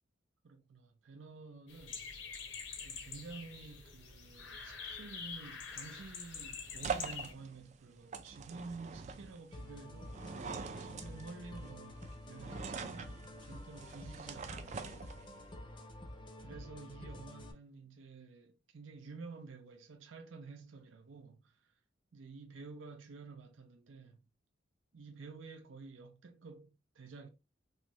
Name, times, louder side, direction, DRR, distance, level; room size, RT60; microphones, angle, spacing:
voice 1, 0.4-2.0 2.8-10.3 10.8-15.4 16.4-21.7 22.1-24.2 24.9-27.3, right 4 dB, 85° right, 0.5 m, -51 dB
sound 1, 1.7-7.3, left 5 dB, 80° left, 0.8 m, -46 dB
sound 2, 5.7-15.6, right 5 dB, 35° right, 0.3 m, -45 dB
sound 3, 9.5-17.5, left 1 dB, 25° left, 0.5 m, -49 dB
3.2 x 2.6 x 2.9 m
head